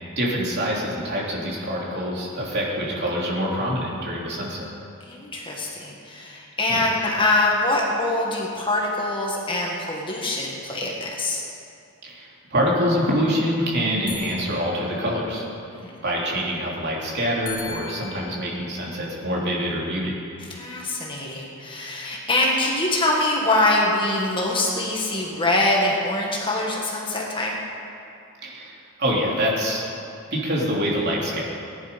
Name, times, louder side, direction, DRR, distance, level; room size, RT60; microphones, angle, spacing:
voice 1, 0.2-4.7 6.7-6.8 12.0-15.5 16.0-20.2 28.4-29.9 30.3-31.4, equal, 50° right, -4 dB, 3.2 m, -25 dB
voice 2, 5.1-11.4 15.7-16.0 20.5-27.6, left 2 dB, 20° left, -2 dB, 1.8 m, -24 dB
sound 1, 13.8-15.8 17.4-19.8, left 6 dB, 80° left, 2.2 m, -42 dB
19.0 x 11.0 x 5.3 m, 2.5 s
head